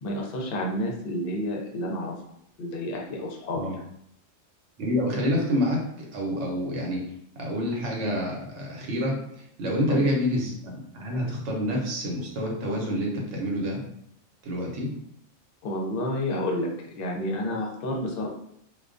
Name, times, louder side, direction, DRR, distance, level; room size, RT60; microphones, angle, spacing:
voice 1, 0.0-2.1 2.6-3.8 9.9-10.0 15.6-18.3, left 1 dB, 60° left, 0 dB, 0.7 m, -30 dB
voice 2, 4.8-7.0 7.4-9.1 9.6-13.8 14.4-14.9, equal, 75° right, -1 dB, 1.0 m, -27 dB
2.3 x 2.2 x 2.4 m, 0.71 s
omnidirectional pair, 1.3 m